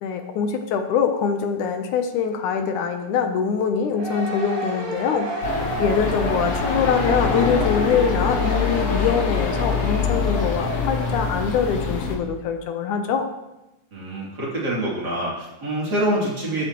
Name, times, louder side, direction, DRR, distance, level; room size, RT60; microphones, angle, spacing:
voice 1, 0.0-5.3 5.8-13.3, left 6 dB, 80° left, 6 dB, 2.3 m, -23 dB
sound 1, 3.9-11.6, right 1 dB, 55° right, 6.3 m, -31 dB
sound 2, 5.4-12.2, left 5 dB, 55° left, 2.3 m, -24 dB
voice 2, 13.9-16.7, right 1 dB, 30° right, -6 dB, 3.4 m, -25 dB
13.5 x 13.0 x 3.1 m, 0.97 s
omnidirectional pair, 3.6 m